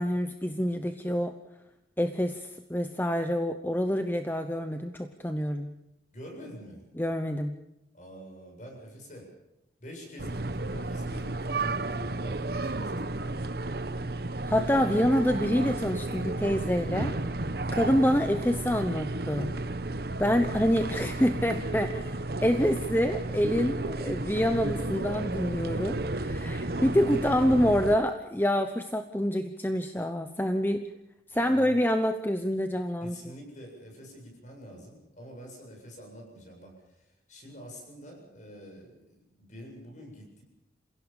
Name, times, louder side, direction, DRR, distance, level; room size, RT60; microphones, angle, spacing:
voice 1, 0.0-1.4 2.0-5.7 7.0-7.6 14.5-17.4 17.7-19.6 20.2-30.9 31.3-33.2, equal, 10° left, 7 dB, 0.8 m, -27 dB
voice 2, 6.1-6.8 7.9-9.3 9.8-13.6 20.2-20.3 31.3-31.8 33.0-40.4, equal, 40° left, 1 dB, 7.6 m, -46 dB
sound 1, 10.2-28.0, right 2 dB, 55° right, 1.1 m, -32 dB
28.0 x 16.5 x 7.1 m, 0.90 s
head